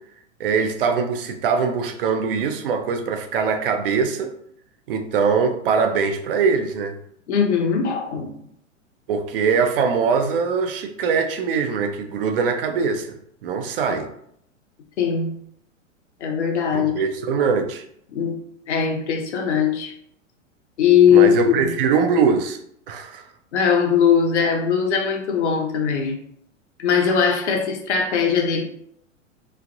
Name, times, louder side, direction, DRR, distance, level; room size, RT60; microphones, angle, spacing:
voice 1, 0.4-4.3 4.9-7.0 9.1-13.2 13.4-14.1 16.7-17.8 21.1-22.6 22.9-23.2, right 5 dB, 45° right, 7 dB, 0.5 m, -22 dB
voice 2, 7.3-8.3 15.0-15.3 16.2-17.0 18.1-18.4 18.7-19.9 20.8-21.7 23.5-26.2 26.8-28.6, left 7 dB, 60° left, 2 dB, 0.7 m, -19 dB
3.1 x 2.5 x 2.5 m, 0.69 s
figure-of-eight pair, 100°, 39 cm